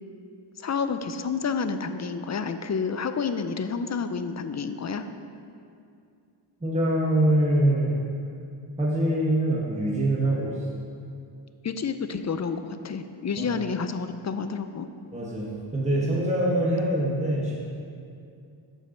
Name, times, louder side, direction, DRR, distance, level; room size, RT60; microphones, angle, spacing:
voice 1, 0.6-5.0 11.6-14.9, left 5 dB, 35° left, 9 dB, 0.4 m, -29 dB
voice 2, 6.6-8.0 8.8-10.5 13.4-13.5 15.1-17.6, right 1 dB, 15° right, -4 dB, 1.1 m, -24 dB
7.2 x 5.2 x 5.8 m, 2.4 s
wide cardioid pair, 75°, 50 cm